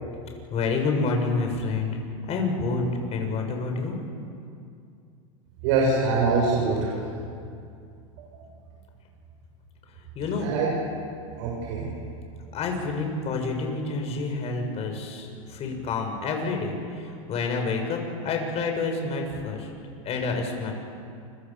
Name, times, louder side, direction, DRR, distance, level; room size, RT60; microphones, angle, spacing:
voice 1, 0.5-2.0 2.3-4.0 10.1-10.5 12.5-19.7 20.0-20.7, left 4 dB, 35° left, 3 dB, 6.5 m, -28 dB
voice 2, 5.6-6.9 10.4-10.7 11.4-11.9, right 4 dB, 65° right, -2 dB, 7.0 m, -23 dB
29.5 x 23.5 x 7.3 m, 2.4 s
supercardioid pair, 120°, 17 cm